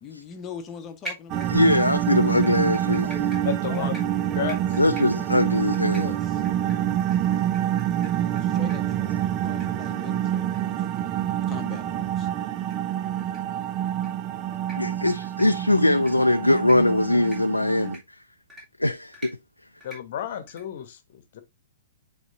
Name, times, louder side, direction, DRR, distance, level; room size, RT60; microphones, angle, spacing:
voice 1, 0.0-1.5 2.8-4.4 5.9-6.4 8.4-11.1 11.5-12.3, left 7 dB, 25° left, 1.1 m, -42 dB
sound 1, 1.0-1.9 2.4-8.4 8.7-8.8 9.1-9.2 9.6-9.7 10.0-10.1 10.5-10.6 11.0-11.1 11.5-11.6 12.6-12.7 13.2-13.4 13.9-14.1 14.5-14.8 15.2-15.5 15.9-16.1 16.6-16.8 17.2-17.4 17.8-18.0 18.5-18.6 19.1-19.3 19.8-20.0 20.5-20.6, right 1 dB, 10° right, 3.1 m, -42 dB
sound 2, 1.3-17.9, right 11 dB, 30° right, 0.5 m, -27 dB
voice 2, 1.5-3.1 4.8-6.1 14.8-18.0 18.8-19.4, left 1 dB, 85° left, 0.4 m, -21 dB
voice 3, 3.4-3.9 4.3-4.8 8.2-8.5 19.8-21.4, left 9 dB, 50° left, 1.1 m, -32 dB
9.3 x 4.2 x 2.6 m
figure-of-eight pair, 110°, 0 cm